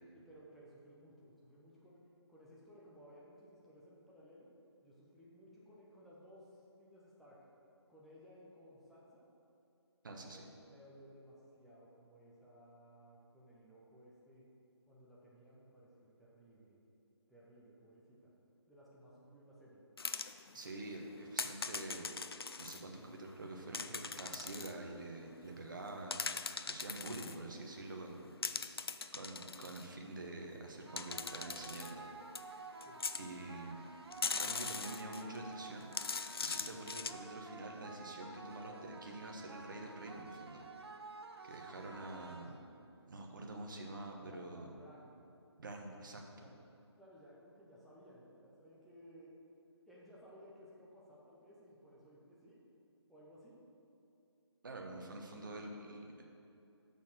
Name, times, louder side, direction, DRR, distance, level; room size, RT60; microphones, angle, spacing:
voice 1, 0.1-2.0 2.3-4.5 4.8-7.4 7.9-9.2 10.1-14.5 14.9-16.8 17.3-18.3 18.7-19.8 28.2-28.7 32.8-33.0 44.2-45.1 46.3-46.6 47.0-49.3 49.8-52.6 53.1-53.6, equal, ahead, -8 dB, 0.5 m, -59 dB
voice 2, 10.0-10.4 20.5-22.1 22.6-26.3 26.7-28.2 29.1-32.0 33.2-33.9 34.4-35.9 36.4-40.6 41.4-42.6 43.1-44.7 45.6-46.2 54.6-56.2, right 2 dB, 45° right, 2 dB, 1.0 m, -47 dB
sound 1, 20.0-20.7 21.4-22.8 23.7-24.7 25.9-27.4 28.4-29.9 31.0-31.9 32.4-32.5 32.8-33.2 34.1-35.4 35.8-37.1, left 5 dB, 60° left, 0.4 m, -40 dB
sound 2, 30.8-42.8, right 3 dB, 60° right, 0.7 m, -52 dB
6.3 x 5.4 x 6.5 m, 2.8 s
figure-of-eight pair, 145°, 15 cm